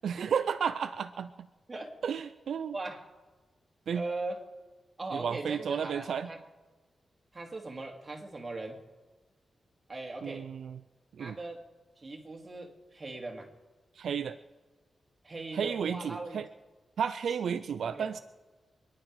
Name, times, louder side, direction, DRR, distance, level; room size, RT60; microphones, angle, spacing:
voice 1, 0.0-1.5 2.0-2.8 3.9-4.1 5.1-6.3 10.2-10.8 11.1-11.4 13.9-14.4 15.5-16.5 17.0-18.2, right 7 dB, 80° right, 11 dB, 0.5 m, -32 dB
voice 2, 2.7-3.1 3.9-4.4 5.0-6.4 7.3-8.8 9.9-10.5 11.2-11.6 12.0-13.5 15.2-16.4 17.5-18.1, right 2 dB, 25° right, 1 dB, 2.6 m, -40 dB
26.5 x 10.5 x 4.8 m, 1.2 s
wide cardioid pair, 115°, 0 cm